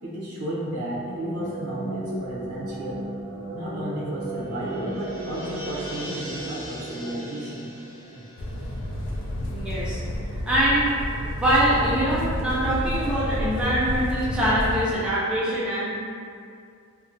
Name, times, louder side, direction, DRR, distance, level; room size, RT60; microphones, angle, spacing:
voice 1, 0.0-3.0 3.5-7.7, right 1 dB, 85° right, -6 dB, 0.6 m, -33 dB
sound 1, 0.7-8.2, right 1 dB, 15° left, 0.9 m, -35 dB
sound 2, 3.2-10.0 10.3-10.4, equal, 30° right, 1.3 m, -41 dB
sound 3, 8.4-14.8, equal, 55° left, 0.3 m, -30 dB
voice 2, 9.5-10.0 10.5-16.0, right 1 dB, 5° right, -10 dB, 0.4 m, -24 dB
2.5 x 2.0 x 2.6 m, 2.3 s
head